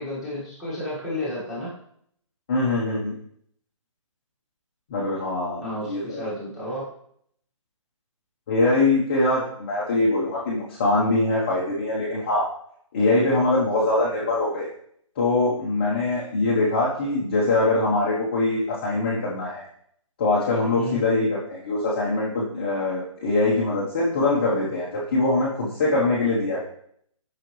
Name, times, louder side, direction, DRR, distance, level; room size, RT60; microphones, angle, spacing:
voice 1, 0.0-1.7 5.6-6.9 20.8-21.0, left 1 dB, ahead, -11 dB, 1.7 m, -31 dB
voice 2, 2.5-3.1 4.9-6.3 8.5-12.5 12.9-14.7 15.2-19.6 20.2-26.6, left 2 dB, 20° left, -6 dB, 0.9 m, -23 dB
9.0 x 5.8 x 3.1 m, 0.67 s
hypercardioid pair, 175°, 17 cm